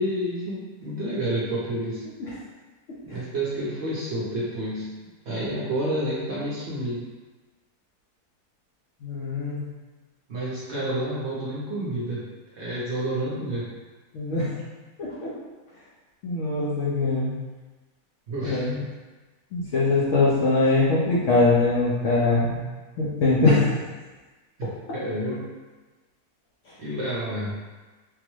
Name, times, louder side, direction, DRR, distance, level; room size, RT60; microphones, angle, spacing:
voice 1, 0.0-2.0 3.0-4.9 5.3-7.0 10.3-12.2 12.5-13.7 18.3-18.7 24.6-25.5 26.8-27.6, right 1 dB, 60° right, -7 dB, 0.8 m, -29 dB
voice 2, 9.0-9.6 14.1-14.5 15.0-15.3 16.2-17.3 18.4-18.7 19.5-22.6 23.0-23.7, left 3 dB, 60° left, -6 dB, 0.8 m, -22 dB
3.7 x 2.0 x 3.0 m, 1.3 s
omnidirectional pair, 1.7 m